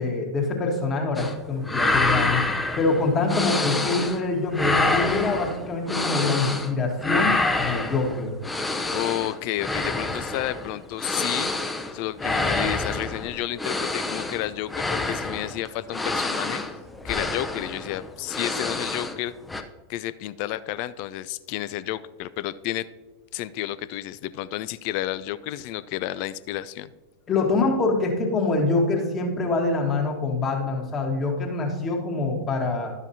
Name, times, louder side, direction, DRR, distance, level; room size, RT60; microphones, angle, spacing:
voice 1, 0.0-2.5 2.8-8.3 27.3-32.9, left 3 dB, 25° left, 1 dB, 1.7 m, -25 dB
sound 1, 1.2-1.4 1.6-4.2 4.5-6.7 7.0-19.2 19.5-19.6, left 2 dB, 10° left, 0.7 m, -27 dB
voice 2, 8.9-11.5 11.9-16.6 17.0-19.3 19.9-22.9 23.3-26.9, left 14 dB, 50° left, 16 dB, 0.3 m, -31 dB
12.0 x 7.0 x 2.8 m, 1.2 s
figure-of-eight pair, 90°, 0 cm